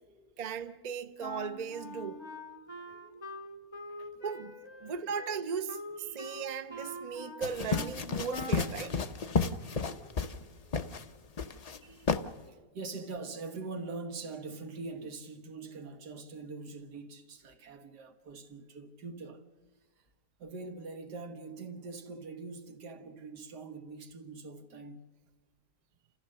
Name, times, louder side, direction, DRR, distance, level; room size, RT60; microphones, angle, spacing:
voice 1, 0.4-2.2 4.2-4.5 4.8-9.0, right 6 dB, 40° right, 0.6 m, -37 dB
Wind instrument woodwind instrument, 1.2-8.0 8.3-8.7, left 1 dB, 20° left, 0.8 m, -44 dB
voice 2, 2.8-3.3 3.9-4.1 4.8-4.9 6.0-6.4 8.9-9.2 9.5-12.2 12.4-19.4 20.4-25.0, right 3 dB, 90° right, 1.9 m, -44 dB
sound 1, 7.4-10.4 10.7-11.0 11.4-11.8 12.1-12.2, left 5 dB, 65° left, 0.3 m, -32 dB
29.0 x 14.5 x 6.5 m
omnidirectional pair, 1.7 m